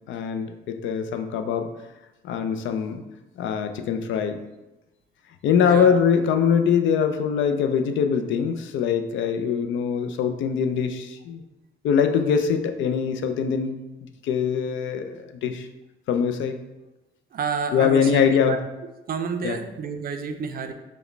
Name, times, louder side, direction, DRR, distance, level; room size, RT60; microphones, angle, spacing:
voice 1, 0.1-1.7 2.2-3.0 3.4-4.4 5.4-11.4 11.8-13.8 14.2-15.7 16.1-16.6 17.7-18.6 19.4-19.6, left 7 dB, 75° left, 7 dB, 0.4 m, -23 dB
voice 2, 5.6-6.0 17.3-18.6 19.1-20.7, right 6 dB, 50° right, 6 dB, 0.4 m, -30 dB
4.7 x 2.1 x 3.2 m, 1.0 s
cardioid pair, 90°, 20 cm